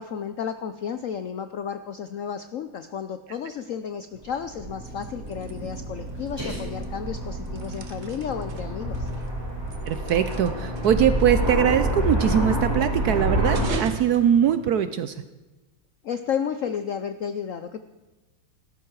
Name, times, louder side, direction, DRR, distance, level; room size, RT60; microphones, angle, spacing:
voice 1, 0.0-9.1 16.0-17.8, left 7 dB, 75° left, 10 dB, 0.7 m, -32 dB
Aircraft, 4.1-13.7, right 1 dB, 10° right, 5.6 m, -28 dB
sound 1, 4.6-15.1, right 4 dB, 45° right, 1.1 m, -40 dB
voice 2, 9.9-15.2, right 9 dB, 70° right, 11 dB, 0.9 m, -22 dB
16.5 x 13.0 x 4.7 m, 1.1 s
omnidirectional pair, 2.1 m